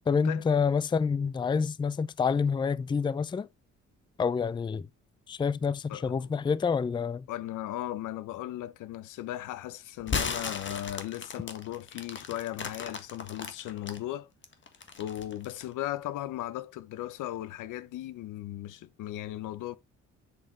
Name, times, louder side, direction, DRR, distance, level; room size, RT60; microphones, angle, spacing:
voice 1, 0.1-3.5 4.2-4.9 5.3-7.3, left 5 dB, 15° left, 0.4 m, -27 dB
voice 2, 5.9-6.3 7.3-14.3 15.0-19.8, left 14 dB, 85° left, 0.8 m, -37 dB
sound 1, 10.0-14.0 14.4-15.7, left 5 dB, 40° left, 1.7 m, -35 dB
7.4 x 7.0 x 3.3 m
cardioid pair, 90°, 30 cm